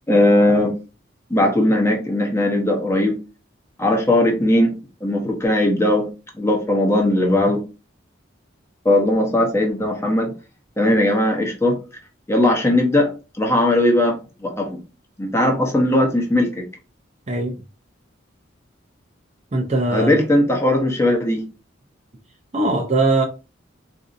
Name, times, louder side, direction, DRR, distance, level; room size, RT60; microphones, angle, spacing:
voice 1, 0.1-0.7 1.3-3.2 3.8-4.7 5.0-6.1 6.4-7.6 8.8-10.3 10.8-11.8 12.3-13.1 13.4-14.8 15.2-16.7 19.9-21.4, left 1 dB, 15° left, 0.8 m, -18 dB
voice 2, 17.3-17.6 19.5-20.1 22.5-23.2, right 2 dB, 35° right, 0.5 m, -20 dB
4.1 x 2.6 x 2.5 m
head